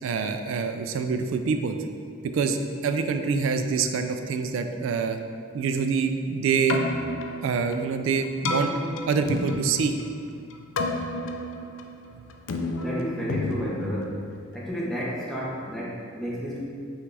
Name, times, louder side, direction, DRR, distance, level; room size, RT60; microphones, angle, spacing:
voice 1, 0.0-1.8 2.2-5.2 5.5-6.8 7.4-8.7 9.1-9.9 12.1-12.2, right 5 dB, 75° right, 7 dB, 0.3 m, -26 dB
Keyboard (musical), 6.5-14.7, left 2 dB, 70° left, 0.4 m, -32 dB
voice 2, 12.8-14.2 14.5-16.6, equal, ahead, -6 dB, 0.6 m, -31 dB
5.8 x 2.4 x 3.3 m, 2.1 s
head